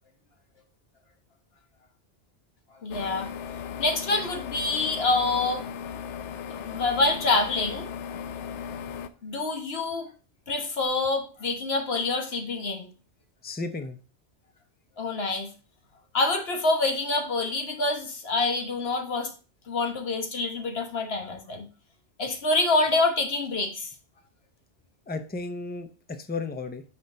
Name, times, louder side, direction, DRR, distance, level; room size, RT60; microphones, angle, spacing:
voice 1, 2.8-3.3 3.8-5.7 6.5-7.9 9.2-10.1 10.5-12.9 15.0-15.5 16.1-19.3 19.7-21.7 22.2-23.9, left 3 dB, 60° left, 1.3 m, -26 dB
sound 1, 2.9-9.1, left 7 dB, 80° left, 0.9 m, -37 dB
voice 2, 13.4-14.0 25.1-25.9 26.2-26.8, left 3 dB, 15° left, 0.4 m, -33 dB
6.1 x 4.0 x 5.2 m
omnidirectional pair, 1.2 m